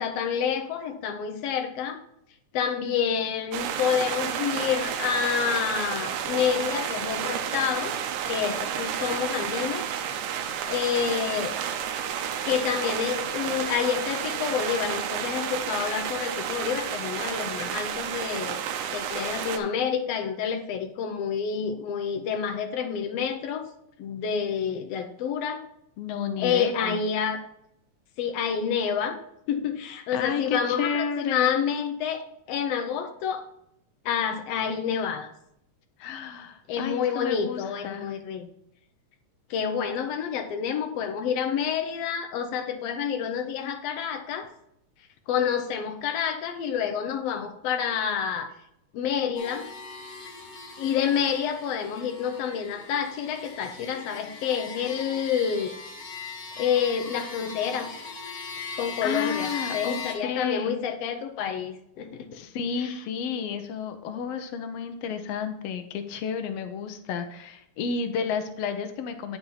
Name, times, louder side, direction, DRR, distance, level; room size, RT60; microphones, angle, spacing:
voice 1, 0.0-2.0 2.5-7.9 8.3-9.8 10.7-11.5 12.4-23.7 24.0-25.6 26.4-27.4 28.2-29.2 29.5-32.2 32.5-33.4 34.0-35.3 36.7-38.5 39.5-44.5 45.3-48.5 48.9-49.7 50.8-55.7 56.6-57.9 58.8-62.4 62.8-63.0, left 7 dB, 90° left, 5 dB, 1.4 m, -28 dB
sound 1, 3.5-19.6, right 8 dB, 85° right, 2.3 m, -31 dB
voice 2, 26.0-27.0 30.1-31.5 36.0-38.1 59.0-60.8 62.3-69.4, left 6 dB, 75° left, 7 dB, 1.5 m, -31 dB
sound 2, 49.3-60.1, left 5 dB, 45° left, 1.6 m, -39 dB
9.1 x 6.0 x 4.0 m, 0.77 s
omnidirectional pair, 3.7 m